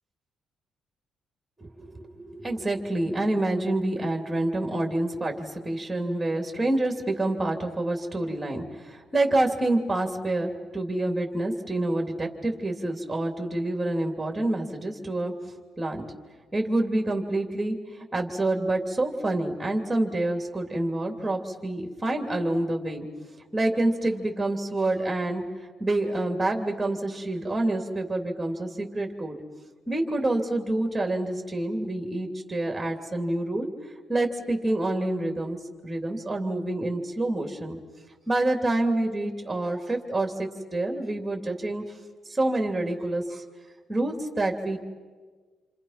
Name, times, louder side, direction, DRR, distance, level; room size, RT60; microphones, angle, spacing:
voice 1, 1.6-15.3 15.8-16.0 16.5-23.1 23.5-25.4 25.8-29.4 29.9-33.7 34.1-35.6 35.8-37.8 38.3-41.8 42.3-43.4 43.9-44.8, right 2 dB, 10° right, 3 dB, 3.1 m, -27 dB
28.5 x 26.0 x 6.0 m, 1.4 s
cardioid pair, 90°, 0 cm